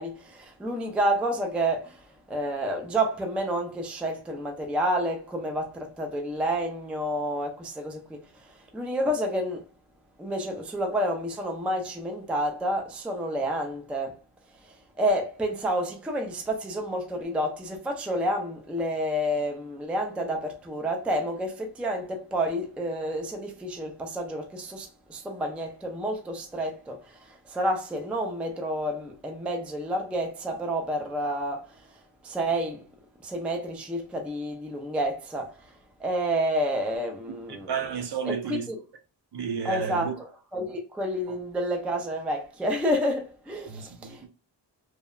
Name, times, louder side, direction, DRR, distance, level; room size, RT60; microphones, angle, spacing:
voice 1, 0.0-9.7 10.2-14.2 14.6-32.8 33.2-35.7 36.0-37.7 38.2-38.8 39.6-40.1 40.5-44.3, equal, 5° right, 0.3 m, -29 dB
voice 2, 37.3-38.7 39.3-40.1 41.3-41.4 43.7-44.3, right 7 dB, 60° right, 0.6 m, -32 dB
2.8 x 2.1 x 2.2 m
wide cardioid pair, 135°, 46 cm